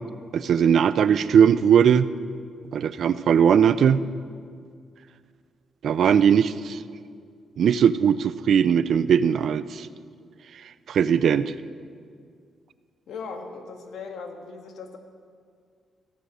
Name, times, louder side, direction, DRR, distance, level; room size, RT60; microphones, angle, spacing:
voice 1, 0.3-2.1 2.7-4.1 5.8-6.8 7.6-9.9 10.9-11.5, right 8 dB, 60° right, 14 dB, 0.5 m, -19 dB
voice 2, 13.1-15.0, left 4 dB, 80° left, 4 dB, 1.7 m, -38 dB
15.0 x 13.5 x 6.3 m, 2.2 s
cardioid pair, 125°, 0 cm